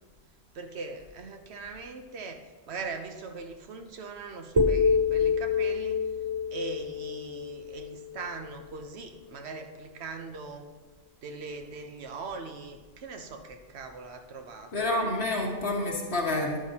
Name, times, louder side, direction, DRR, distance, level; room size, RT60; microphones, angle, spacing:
voice 1, 0.5-6.0 6.5-10.7 11.2-15.3, right 4 dB, 85° right, 6 dB, 1.1 m, -41 dB
sound 1, 4.6-8.6, left 5 dB, 30° right, 0.6 m, -27 dB
voice 2, 14.7-16.7, left 2 dB, 80° left, -1 dB, 1.9 m, -28 dB
11.0 x 10.0 x 2.8 m, 1.4 s
omnidirectional pair, 1.1 m